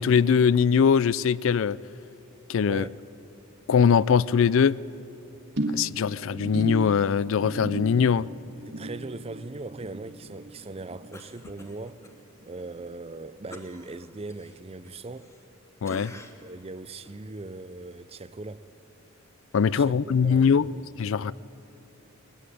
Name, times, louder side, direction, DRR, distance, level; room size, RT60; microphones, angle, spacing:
voice 1, 0.0-1.8 2.5-2.8 3.7-4.8 5.7-8.3 15.8-16.1 19.5-20.7 21.0-21.3, left 6 dB, 65° left, 0.4 m, -21 dB
sound 1, 5.6-12.1 12.4-12.8 13.2-13.3, right 1 dB, 55° right, 1.5 m, -36 dB
voice 2, 8.7-12.0 12.5-15.3 16.1-18.7 19.8-20.9, right 2 dB, 30° right, 0.5 m, -40 dB
Cough, 11.1-12.2 12.5-12.7 13.5-15.6 15.8-16.6 17.0-17.2, left 1 dB, 15° left, 1.1 m, -47 dB
20.0 x 14.5 x 9.9 m
head